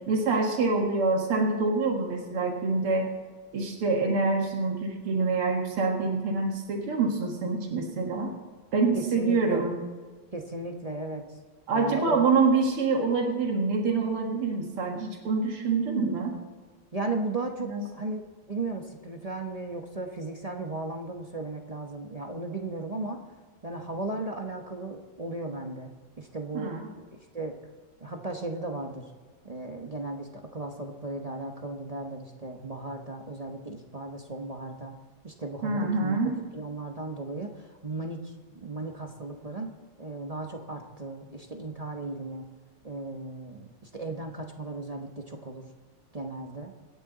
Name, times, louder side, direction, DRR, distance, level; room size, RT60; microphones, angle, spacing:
voice 1, 0.1-3.1 3.5-8.3 8.7-9.7 11.7-16.4 17.6-17.8 26.5-26.9 35.6-36.4, right 4 dB, 90° right, 1 dB, 2.7 m, -26 dB
voice 2, 8.9-9.7 10.3-11.2 11.7-12.3 16.9-17.7 17.9-18.2 18.5-23.2 23.6-27.5 28.0-29.1 29.4-34.9 35.2-36.2 36.5-39.7 40.0-42.5 42.8-45.6 46.1-46.7, right 2 dB, 30° right, 2 dB, 0.6 m, -36 dB
25.0 x 10.0 x 4.0 m, 1.4 s
omnidirectional pair, 2.4 m